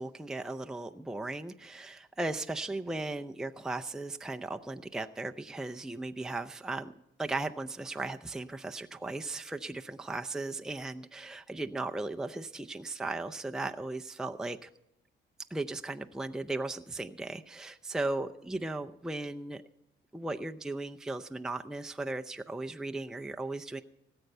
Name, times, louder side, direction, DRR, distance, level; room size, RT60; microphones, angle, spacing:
voice 1, 0.0-6.9 7.2-14.7 15.5-19.6 20.1-23.8, right 2 dB, 5° right, 5 dB, 0.5 m, -37 dB
18.0 x 7.9 x 5.4 m, 0.89 s
cardioid pair, 90°, 20 cm